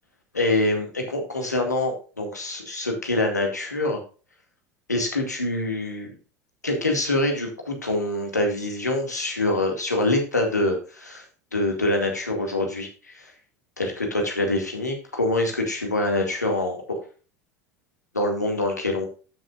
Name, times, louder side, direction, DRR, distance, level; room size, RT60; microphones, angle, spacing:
voice 1, 0.3-4.0 4.9-6.1 6.6-11.2 11.5-13.3 13.8-17.0 18.1-19.1, left 2 dB, 85° left, 2 dB, 2.1 m, -25 dB
13.0 x 6.4 x 2.5 m, 0.36 s
figure-of-eight pair, 70°, 9 cm